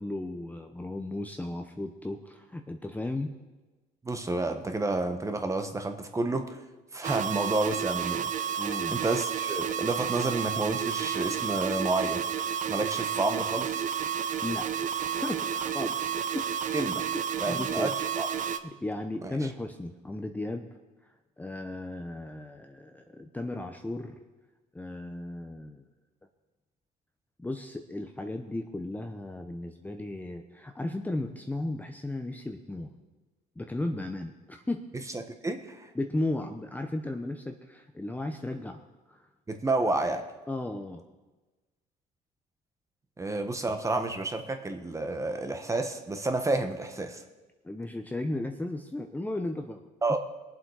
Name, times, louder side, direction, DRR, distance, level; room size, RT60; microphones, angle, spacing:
voice 1, 0.0-3.3 8.6-8.9 14.4-14.7 15.2-16.7 17.5-17.9 18.6-20.7 21.4-24.2 24.7-25.8 27.4-32.9 33.6-34.8 35.9-38.8 39.1-39.3 40.5-41.0 47.6-49.8, left 2 dB, 10° left, 5 dB, 0.8 m, -35 dB
voice 2, 4.0-6.6 6.9-8.3 8.9-12.2 12.7-13.8 16.7-17.0 17.4-18.3 19.2-19.4 35.1-35.9 39.5-40.2 43.2-47.2 50.0-50.2, right 2 dB, 20° right, 6 dB, 1.3 m, -30 dB
sound 1, 7.0-18.6, right 8 dB, 50° right, 0.8 m, -31 dB
21.5 x 7.6 x 4.9 m, 1.2 s
cardioid pair, 110°, 17 cm